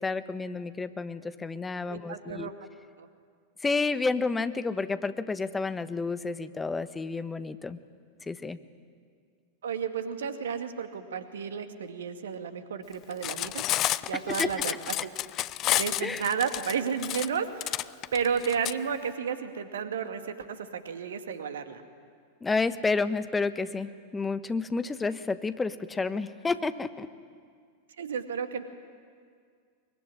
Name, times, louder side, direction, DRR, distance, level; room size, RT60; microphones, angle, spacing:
voice 1, 0.0-2.5 3.6-7.8 8.2-8.6 14.3-14.5 16.0-16.2 22.4-27.1, left 4 dB, 10° left, 12 dB, 1.2 m, -30 dB
voice 2, 1.9-2.5 3.0-3.1 9.6-13.6 14.1-15.1 15.7-17.8 18.1-21.8 28.0-28.6, right 7 dB, 65° right, 8 dB, 2.1 m, -32 dB
Cutlery silverware, 13.1-18.7, left 14 dB, 35° left, 0.6 m, -30 dB
23.0 x 22.5 x 9.9 m, 2.1 s
figure-of-eight pair, 90°, 0 cm